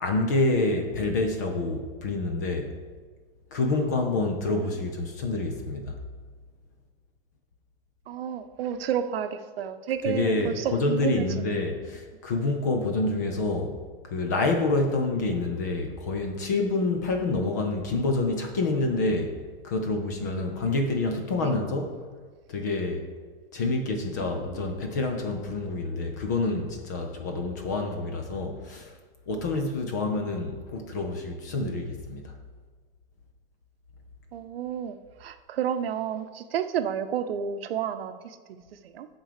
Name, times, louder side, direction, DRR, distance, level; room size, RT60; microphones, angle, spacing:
voice 1, 0.0-2.7 3.5-6.0 10.1-13.8 14.0-19.4 19.6-22.0 22.5-23.0 23.5-28.9 29.3-32.3, left 2 dB, 20° left, 4 dB, 0.3 m, -27 dB
voice 2, 8.1-11.4 21.4-21.5 24.2-24.9 34.3-38.6 38.8-39.1, right 8 dB, 80° right, 9 dB, 0.7 m, -31 dB
8.8 x 3.7 x 6.6 m, 1.5 s
supercardioid pair, 175°, 29 cm